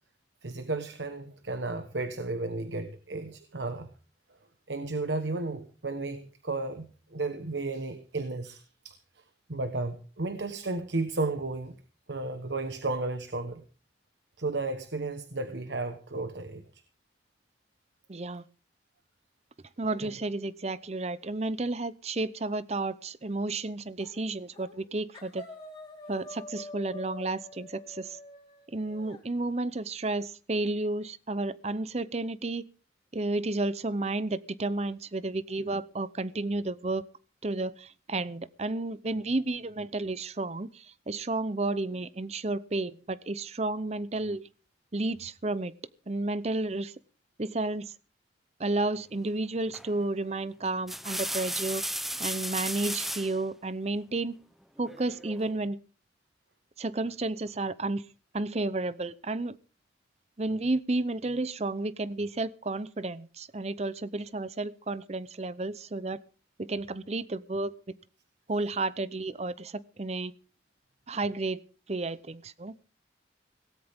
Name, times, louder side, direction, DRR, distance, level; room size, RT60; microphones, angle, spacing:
voice 1, 0.4-3.9 4.7-9.2 9.5-11.8 12.1-13.6 14.4-16.6 20.0-20.1, right 3 dB, 75° right, 1.3 m, -33 dB
voice 2, 18.1-18.4 19.8-25.4 26.1-28.2 28.7-32.6 33.1-37.0 37.4-44.5 44.9-45.7 46.1-46.9 47.4-47.9 48.6-51.8 52.2-54.4 54.8-55.8 56.8-58.0 58.3-59.6 60.4-66.2 66.6-67.7 68.5-70.3 71.1-71.6 71.9-72.7, right 2 dB, 35° right, 0.7 m, -32 dB
sound 1, 24.0-24.2 24.5-24.9 25.1-29.2, left 2 dB, 25° left, 4.0 m, -46 dB
sound 2, 49.7-50.0 50.6-53.4 54.8-55.5, equal, ahead, 0.7 m, -34 dB
17.5 x 17.0 x 3.6 m
head